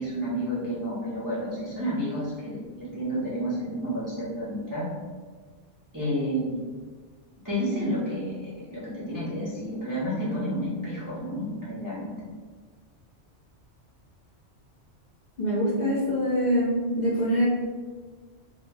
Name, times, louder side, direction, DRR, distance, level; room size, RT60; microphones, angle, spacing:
voice 1, 0.0-4.9 5.9-6.6 7.4-12.1, equal, 30° right, -9 dB, 0.4 m, -30 dB
voice 2, 15.4-17.5, equal, 55° left, -7 dB, 0.5 m, -24 dB
2.1 x 2.1 x 3.3 m, 1.5 s
omnidirectional pair, 1.2 m